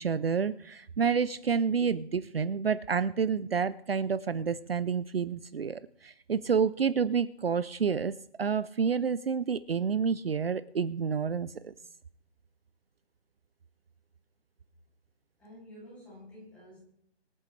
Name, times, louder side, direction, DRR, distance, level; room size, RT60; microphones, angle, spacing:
voice 1, 0.0-11.7, right 6 dB, 60° right, 16 dB, 0.6 m, -29 dB
voice 2, 15.4-16.8, left 1 dB, 5° left, -8 dB, 2.8 m, -50 dB
26.5 x 8.8 x 3.3 m, 0.73 s
hypercardioid pair, 175°, 33 cm